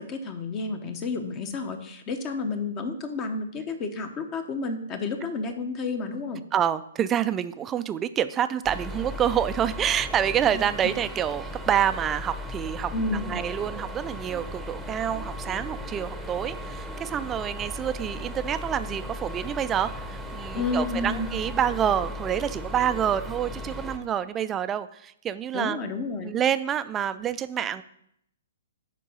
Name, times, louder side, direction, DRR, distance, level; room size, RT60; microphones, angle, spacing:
voice 1, 0.0-6.4 10.5-10.7 12.9-13.3 20.5-21.3 25.5-26.3, left 3 dB, 25° left, 7 dB, 0.8 m, -31 dB
voice 2, 6.5-12.9 13.3-25.8 26.2-27.8, right 9 dB, 20° right, 12 dB, 0.4 m, -27 dB
sound 1, 8.6-24.0, left 1 dB, ahead, 0.9 m, -36 dB
10.0 x 3.7 x 5.5 m, 0.73 s
hypercardioid pair, 145°, 0 cm